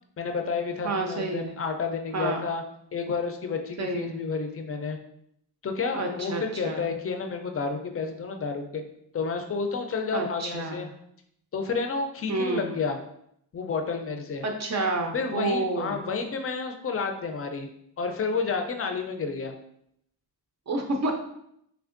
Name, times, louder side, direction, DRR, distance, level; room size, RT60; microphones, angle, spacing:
voice 1, 0.2-2.6 2.9-5.0 5.6-8.8 9.1-10.9 11.5-13.0 13.5-14.4 15.1-17.7 18.0-19.5, left 4 dB, 35° left, 5 dB, 0.4 m, -30 dB
voice 2, 0.8-1.5 2.1-2.4 3.8-4.2 5.9-6.8 10.1-10.9 12.3-12.8 14.4-16.0 20.7-21.1, right 2 dB, 45° right, 2 dB, 0.5 m, -29 dB
3.5 x 3.4 x 2.5 m, 0.73 s
wide cardioid pair, 125°, 40 cm